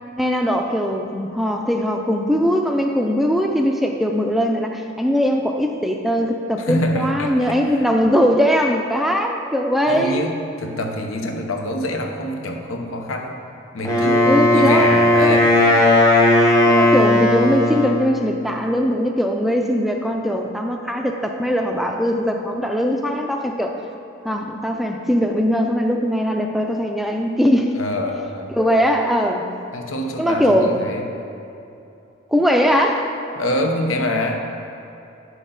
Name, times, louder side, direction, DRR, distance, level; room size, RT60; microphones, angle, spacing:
voice 1, 0.2-10.2 14.2-14.9 15.2-15.4 15.7-15.8 16.7-23.8 24.2-27.7 28.5-29.5 30.2-30.8 32.3-33.1, equal, ahead, 2 dB, 0.3 m, -20 dB
voice 2, 6.6-7.6 9.9-13.4 13.7-15.5 27.7-28.5 29.7-31.0 33.4-34.5, left 1 dB, 90° left, 3 dB, 0.9 m, -25 dB
Wind instrument woodwind instrument, 13.9-18.0, left 1 dB, 15° left, 1.0 m, -15 dB
9.8 x 6.1 x 3.9 m, 2.8 s
head